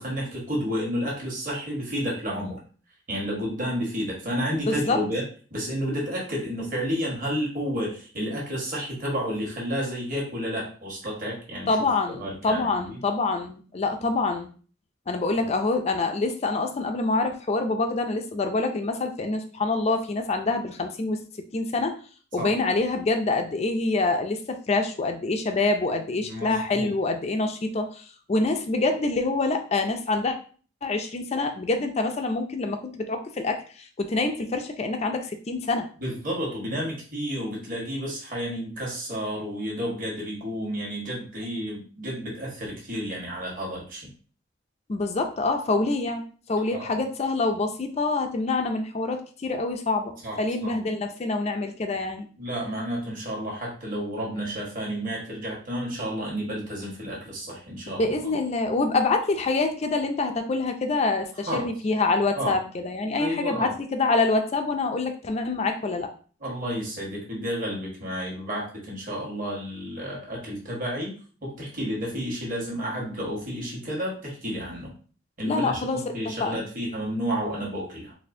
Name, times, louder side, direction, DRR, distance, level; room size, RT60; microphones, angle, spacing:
voice 1, 0.0-2.6 3.1-5.2 5.5-13.0 15.4-15.5 22.4-22.5 26.2-26.9 36.0-44.1 46.7-47.0 50.2-50.7 52.4-58.1 61.5-61.7 62.3-62.5 63.2-63.7 66.4-71.1 71.4-74.9 75.4-75.8 76.1-78.1, equal, 45° right, -3 dB, 1.3 m, -31 dB
voice 2, 4.5-5.0 11.7-14.5 15.1-21.2 21.5-22.0 22.3-30.3 30.8-35.9 44.9-46.2 46.5-52.3 57.9-66.1 75.4-76.1 76.4-76.7, left 3 dB, 35° left, 5 dB, 0.4 m, -26 dB
4.1 x 2.5 x 2.6 m, 0.40 s
head